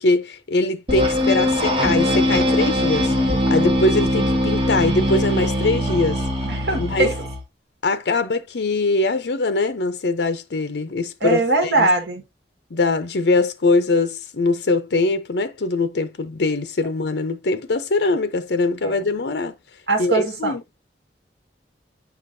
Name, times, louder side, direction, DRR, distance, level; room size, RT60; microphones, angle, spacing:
voice 1, 0.0-3.1 3.5-6.2 6.8-7.1 7.8-11.9 12.7-19.5 20.0-20.6, left 3 dB, 70° left, 0.6 m, -22 dB
sound 1, 0.9-7.4, left 1 dB, 30° right, 1.5 m, -21 dB
voice 2, 6.4-7.1 11.2-12.2 18.8-19.0 19.9-20.5, right 2 dB, 75° right, 1.8 m, -21 dB
8.4 x 5.0 x 2.6 m
head